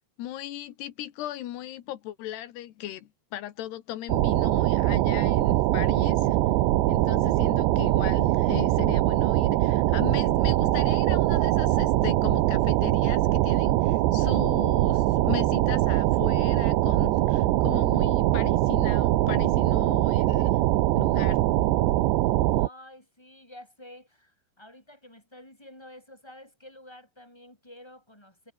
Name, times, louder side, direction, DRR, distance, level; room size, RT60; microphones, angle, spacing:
voice 1, 0.2-6.4 6.9-20.6 20.9-21.4, left 13 dB, 75° left, 3.4 m, -37 dB
sound 1, 4.1-22.7, right 16 dB, 85° right, 3.4 m, -22 dB
voice 2, 22.5-28.5, left 1 dB, 5° left, 6.5 m, -49 dB
omnidirectional pair, 5.0 m